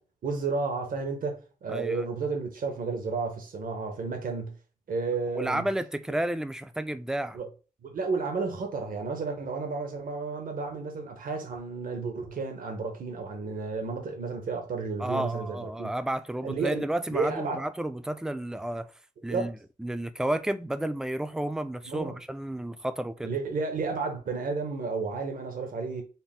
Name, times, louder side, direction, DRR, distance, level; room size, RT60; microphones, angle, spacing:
voice 1, 0.2-4.5 4.9-5.6 7.3-7.5 7.8-15.9 16.4-17.7 19.3-19.5 21.8-22.2 23.2-26.0, right 4 dB, 85° right, 0.9 m, -32 dB
voice 2, 1.7-2.0 5.3-7.4 15.0-18.9 19.2-23.3, right 1 dB, 5° right, 0.3 m, -31 dB
4.2 x 2.0 x 3.6 m
wide cardioid pair, 115°, 14 cm